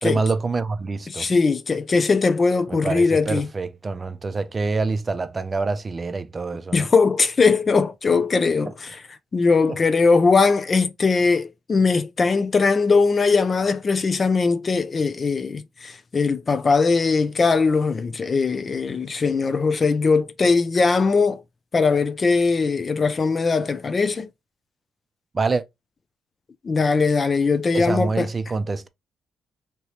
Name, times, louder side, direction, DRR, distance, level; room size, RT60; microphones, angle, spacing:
voice 1, 0.0-1.3 2.7-6.9 25.3-25.6 27.7-28.9, right 4 dB, 30° right, 0.5 m, -26 dB
voice 2, 1.1-3.5 6.7-9.0 9.3-21.4 21.7-24.3 26.6-28.3, left 4 dB, 35° left, 0.4 m, -20 dB
3.0 x 2.9 x 3.1 m
cardioid pair, 90°, 0 cm